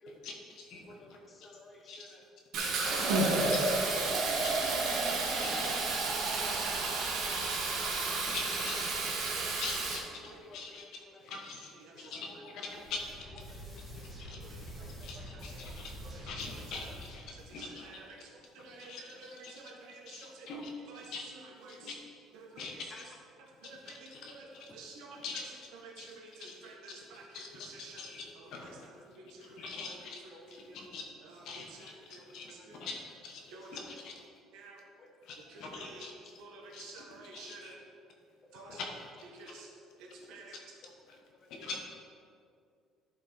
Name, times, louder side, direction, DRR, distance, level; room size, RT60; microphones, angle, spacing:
voice 1, 0.1-1.5 1.8-2.1 3.4-3.6 4.4-4.8 5.1-5.8 7.7-7.9 8.2-9.0 9.6-13.0 13.8-13.9 14.2-14.4 15.0-15.9 16.2-18.1 18.6-19.7 20.0-20.7 21.1-21.3 21.7-22.0 22.6-23.0 23.6-24.7 25.1-25.4 26.0-27.0 27.3-28.8 29.4-31.1 31.4-34.3 35.2-36.4 36.7-37.7 38.7-39.1 39.4-39.5 41.1-41.2 41.5-41.8, left 4 dB, 60° left, 1 dB, 1.2 m, -44 dB
voice 2, 0.9-2.2 3.0-3.5 7.2-8.2 9.3-9.5 10.2-10.6 11.1-11.2 12.4-12.7 13.5-14.1 14.4-14.5 14.8-14.9 22.9-23.0 24.7-24.8 29.7-29.8 30.3-30.4 32.6-32.7 35.0-35.1 35.7-36.0 38.5-38.8 40.8-40.9 41.6-41.7, left 2 dB, 25° left, 2 dB, 0.9 m, -54 dB
Fill (with liquid), 2.5-10.0, right 3 dB, 65° right, 1.6 m, -31 dB
voice 3, 2.9-3.3 4.2-4.4 5.2-5.5 9.4-9.5 11.8-12.1 14.5-14.9 17.6-18.2 18.5-18.9 19.2-20.5 20.9-21.0 21.6-21.9 22.5-22.6 23.6-24.1 24.3-24.5 24.7-25.2 25.8-27.2 27.7-28.0 28.6-28.7 29.2-29.7 30.7-30.8 31.6-31.7 32.1-32.2 32.5-32.8 33.5-33.8 34.5-34.8 35.5-36.1 36.4-37.7 38.5-38.8 39.3-39.7 40.1-40.6, right 1 dB, 80° right, -1 dB, 1.6 m, -43 dB
sound 1, 12.7-17.5, equal, ahead, 2.0 m, -46 dB
11.0 x 4.6 x 4.3 m, 2.3 s
cardioid pair, 150°, 0 cm